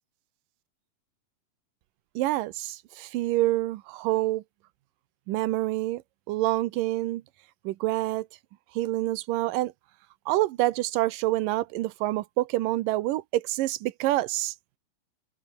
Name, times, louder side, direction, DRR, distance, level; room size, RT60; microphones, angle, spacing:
voice 1, 2.2-4.4 5.3-6.0 6.3-7.2 7.6-8.3 8.8-9.7 10.3-14.5, right 16 dB, 80° right, 2.5 m, -27 dB
omnidirectional pair, 4.0 m